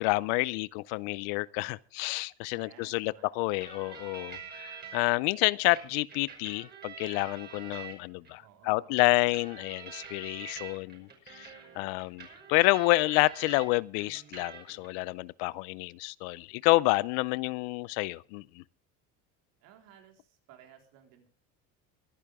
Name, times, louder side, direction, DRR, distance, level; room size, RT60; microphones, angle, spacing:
voice 1, 0.0-18.6, left 22 dB, 80° left, 0.6 m, -29 dB
voice 2, 2.5-3.3 8.2-9.4 12.3-12.6 19.6-21.3, right 9 dB, 70° right, 4.3 m, -58 dB
sound 1, 3.6-5.1 5.7-8.3 9.0-13.7 14.0-14.9, right 6 dB, 30° right, 5.7 m, -46 dB
24.0 x 10.0 x 3.6 m
cardioid pair, 125°, 34 cm